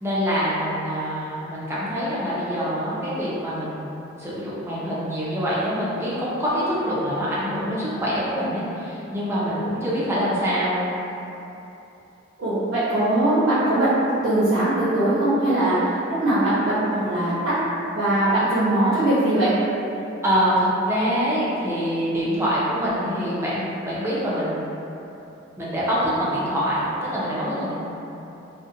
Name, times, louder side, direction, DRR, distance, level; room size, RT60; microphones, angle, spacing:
voice 1, 0.0-3.9 4.2-10.9 20.2-24.6 25.6-27.7, equal, 15° right, -9 dB, 0.4 m, -25 dB
voice 2, 12.4-13.9 14.2-15.8 16.2-17.5 17.9-19.5, right 1 dB, 70° right, -13 dB, 0.7 m, -21 dB
2.6 x 2.0 x 2.5 m, 2.9 s
head